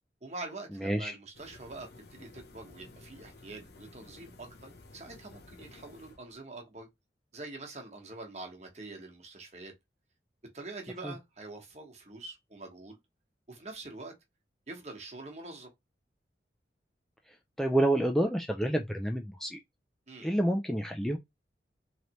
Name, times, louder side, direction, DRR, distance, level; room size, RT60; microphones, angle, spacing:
voice 1, 0.2-6.9 7.3-9.7 10.5-13.0 13.5-14.1 14.7-15.7 20.1-20.3, right 2 dB, 40° right, 1.2 m, -45 dB
voice 2, 0.7-1.2 11.0-11.1 17.3-19.6 20.2-21.2, right 1 dB, ahead, 0.3 m, -29 dB
sound 1, 1.3-6.3, left 2 dB, 70° left, 0.8 m, -53 dB
3.9 x 3.3 x 3.0 m
head